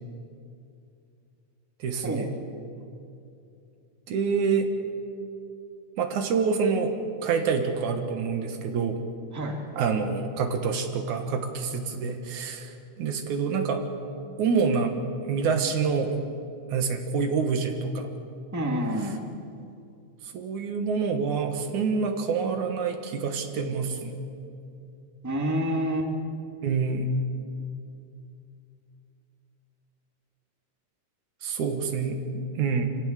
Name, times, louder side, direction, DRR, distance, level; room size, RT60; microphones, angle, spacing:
voice 1, 1.8-2.3 4.1-4.7 6.0-6.9 7.2-9.0 9.8-13.8 14.4-14.9 15.3-16.2 16.7-18.1 20.3-24.1 26.6-27.1 31.4-32.9, right 5 dB, 80° right, 5 dB, 3.0 m, -27 dB
voice 2, 9.3-9.6 18.5-19.2 25.2-26.1, equal, 5° right, 1 dB, 1.6 m, -28 dB
27.0 x 16.5 x 7.5 m, 2.6 s
omnidirectional pair, 3.4 m